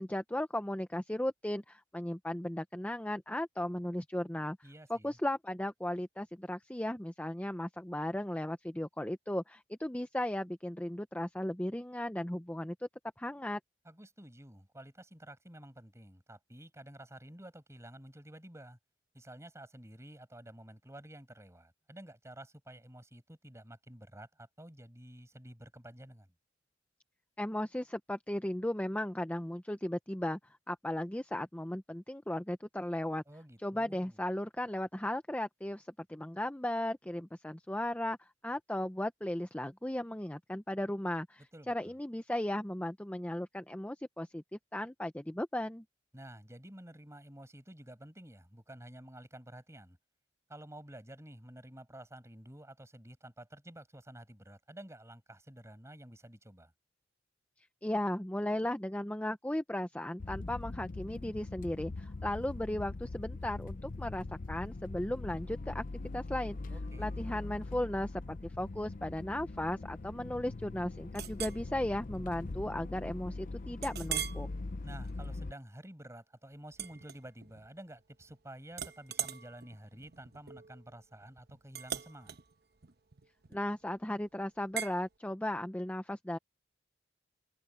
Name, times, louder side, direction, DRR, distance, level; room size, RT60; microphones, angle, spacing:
voice 1, 0.0-4.6 4.9-12.9 13.2-13.6 27.4-30.4 30.7-33.2 33.6-41.4 41.7-45.8 57.8-65.8 66.1-66.6 67.0-74.5 83.5-86.4, left 1 dB, 10° left, 0.7 m, -36 dB
voice 2, 4.6-5.2 13.8-18.8 19.1-26.3 33.3-34.2 41.5-41.9 46.1-50.0 50.5-56.7 66.7-67.3 74.8-82.4, right 1 dB, 15° right, 7.1 m, -51 dB
sound 1, 60.2-75.5, left 2 dB, 45° left, 0.6 m, -42 dB
Chink clink, 71.1-71.6 72.1-72.3 72.8-72.9 73.8-74.5 75.0-75.2 76.7-77.7 78.0-78.4 78.7-83.8 84.8-85.0, right 9 dB, 60° right, 1.1 m, -41 dB
head